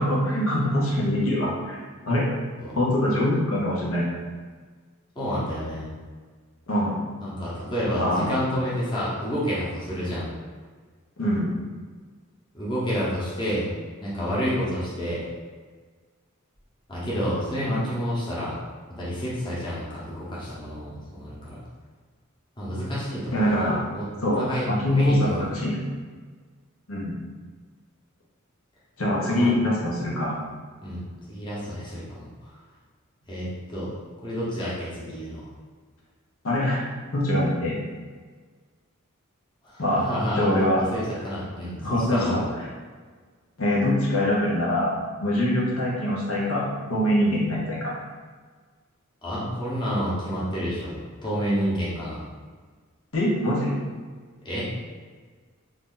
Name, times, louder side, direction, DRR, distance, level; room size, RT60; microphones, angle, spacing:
voice 1, 0.0-1.8 2.1-2.2 2.7-4.1 6.7-7.0 8.0-8.3 11.2-11.5 17.7-17.8 23.3-23.8 24.2-25.8 26.9-27.2 29.0-30.4 36.4-36.9 37.1-37.7 39.8-40.0 40.3-40.8 41.8-42.4 43.6-44.9 45.2-47.9 53.1-53.8, left 1 dB, 75° left, -5 dB, 0.8 m, -23 dB
voice 2, 5.1-5.9 7.2-10.3 12.5-13.7 14.0-15.2 16.9-18.6 19.0-21.6 22.6-23.7 23.9-24.1 24.4-25.4 29.3-29.5 30.8-31.0 31.3-32.5 33.3-33.9 34.2-35.4 39.6-40.5 40.8-42.5 49.2-52.2 54.4-54.7, equal, 20° left, -8 dB, 0.9 m, -29 dB
2.7 x 2.6 x 3.7 m, 1.5 s
head